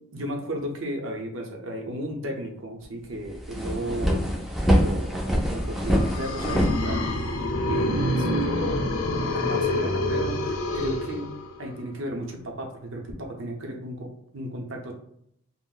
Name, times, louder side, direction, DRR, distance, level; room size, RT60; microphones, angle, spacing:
voice 1, 0.1-4.5 4.8-7.1 7.7-8.9 9.3-11.3 11.6-14.9, equal, 65° right, 1 dB, 0.7 m, -34 dB
sound 1, 2.8-2.9 3.2-7.5, equal, ahead, 0.4 m, -24 dB
sound 2, 5.8-11.7, left 1 dB, 75° left, 0.5 m, -27 dB
2.5 x 2.0 x 3.8 m, 0.71 s
head